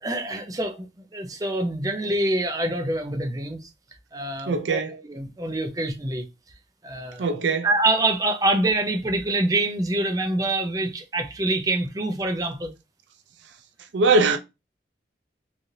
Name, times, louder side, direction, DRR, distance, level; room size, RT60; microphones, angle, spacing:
voice 1, 0.0-0.9 1.1-3.7 4.1-4.8 5.1-6.3 6.8-7.4 7.6-12.7, right 2 dB, 20° right, 0.5 m, -25 dB
voice 2, 4.5-5.0 7.2-7.7 13.9-14.4, right 3 dB, 80° right, 0.5 m, -21 dB
3.1 x 2.5 x 2.7 m
head